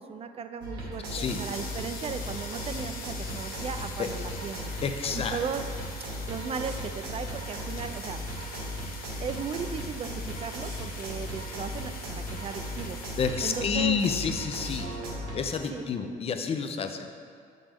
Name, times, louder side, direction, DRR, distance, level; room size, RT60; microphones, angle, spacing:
voice 1, 0.0-4.7 5.1-5.7 6.3-8.2 9.2-13.0 13.4-14.0 15.7-15.9, right 6 dB, 35° right, 8 dB, 0.4 m, -36 dB
sound 1, 0.6-15.6, right 1 dB, 90° right, 1.8 m, -37 dB
sound 2, 1.1-13.3, left 5 dB, 60° left, 0.8 m, -44 dB
voice 2, 1.1-1.4 4.0-4.1 4.8-5.4 13.2-14.9 15.3-17.1, left 6 dB, 35° left, 7 dB, 0.5 m, -29 dB
7.5 x 5.3 x 3.5 m, 2.2 s
cardioid pair, 110°, 17 cm